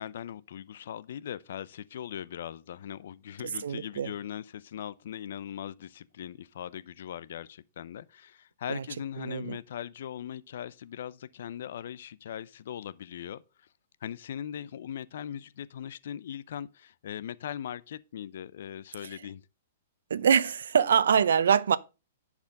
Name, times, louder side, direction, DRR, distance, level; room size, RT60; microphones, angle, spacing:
voice 1, 0.0-13.7 14.0-19.4, left 10 dB, 55° left, 0.5 m, -40 dB
voice 2, 3.6-4.1 8.7-8.8 9.2-9.6 20.1-21.8, right 7 dB, 80° right, 0.7 m, -24 dB
10.5 x 4.9 x 5.1 m
hypercardioid pair, 170°, 0 cm